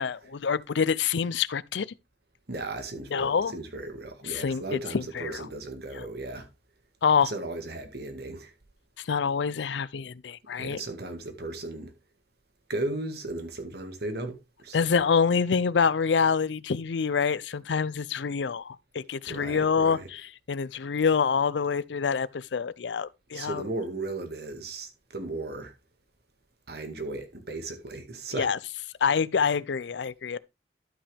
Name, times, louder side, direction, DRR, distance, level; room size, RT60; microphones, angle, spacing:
voice 1, 0.0-1.9 3.1-3.5 4.2-5.5 5.9-6.0 7.0-7.3 9.0-10.8 14.7-23.6 28.4-28.6 29.0-30.4, left 6 dB, 85° left, 0.5 m, -26 dB
voice 2, 2.5-6.5 7.2-8.5 10.6-11.9 12.7-14.8 19.3-20.1 23.3-25.7 26.7-28.5, right 2 dB, 60° right, 1.9 m, -36 dB
12.5 x 5.8 x 3.4 m
head